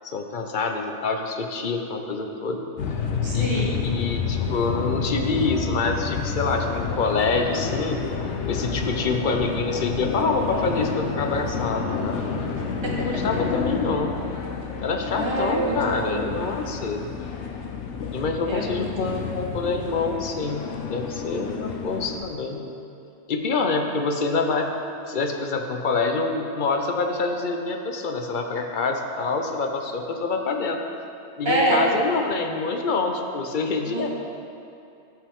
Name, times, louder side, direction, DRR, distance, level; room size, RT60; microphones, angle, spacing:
voice 1, 0.0-2.6 3.3-8.0 8.5-12.3 12.9-14.1 14.8-17.1 18.1-22.6 23.3-24.7 25.1-30.8 31.4-34.1, left 3 dB, 50° left, 4 dB, 0.8 m, -26 dB
sound 1, 2.8-22.2, left 5 dB, 80° left, 1.0 m, -29 dB
voice 2, 3.2-3.8 12.8-12.9 15.2-16.2 18.5-19.2 31.4-31.8 33.9-34.1, right 2 dB, 25° right, -4 dB, 1.4 m, -26 dB
13.5 x 5.7 x 3.6 m, 2.7 s
omnidirectional pair, 1.2 m